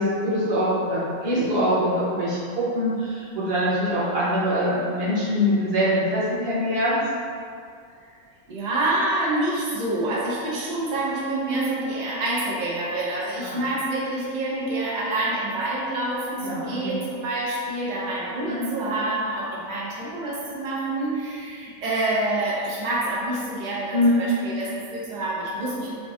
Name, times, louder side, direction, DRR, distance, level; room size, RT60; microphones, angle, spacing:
voice 1, 0.0-7.0 13.4-13.6 16.4-17.0 18.5-18.7 23.9-24.2, equal, 50° right, -8 dB, 0.9 m, -23 dB
voice 2, 8.5-25.9, right 2 dB, 85° right, -6 dB, 0.4 m, -27 dB
3.7 x 2.5 x 2.4 m, 2.2 s
omnidirectional pair, 1.5 m